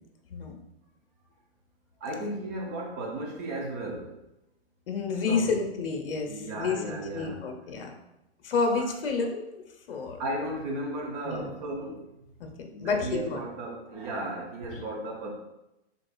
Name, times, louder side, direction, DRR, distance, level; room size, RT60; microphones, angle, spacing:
voice 1, 2.0-4.2 5.3-5.5 6.3-7.4 8.8-8.9 10.2-12.1 12.7-15.3, right 1 dB, 15° right, -1 dB, 0.4 m, -35 dB
voice 2, 4.9-7.9 8.4-10.2 11.2-11.5 12.4-12.5 12.8-13.4 14.7-14.8, left 4 dB, 55° left, 3 dB, 0.9 m, -30 dB
5.0 x 3.9 x 2.3 m, 0.92 s
hypercardioid pair, 145°, 33 cm